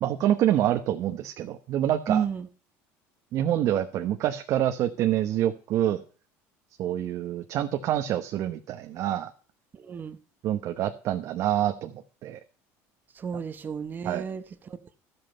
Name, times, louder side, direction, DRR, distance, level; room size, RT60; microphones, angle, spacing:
voice 1, 0.0-2.2 3.3-6.0 6.8-9.3 10.4-11.9 12.2-12.4 14.0-14.2, right 12 dB, 55° right, 1.0 m, -26 dB
voice 2, 2.1-2.5 9.7-10.2 13.2-15.0, right 7 dB, 30° right, 1.1 m, -32 dB
13.0 x 8.0 x 5.4 m
cardioid pair, 130°, 7 cm